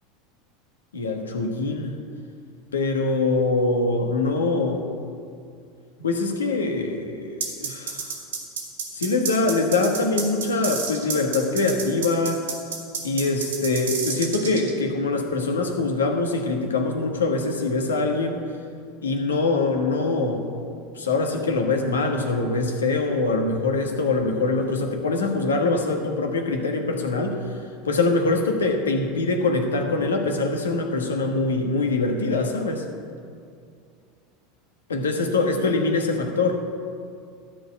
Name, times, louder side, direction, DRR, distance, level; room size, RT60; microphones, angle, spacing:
voice 1, 0.9-2.0 2.7-4.8 6.0-8.1 8.9-12.5 13.0-18.4 19.0-20.5 21.0-27.4 27.9-32.8 34.9-36.6, left 3 dB, 90° left, 4 dB, 1.4 m, -23 dB
sound 1, 7.4-14.7, right 6 dB, 85° right, 2.2 m, -29 dB
13.0 x 5.1 x 8.9 m, 2.3 s
hypercardioid pair, 90°, 0 cm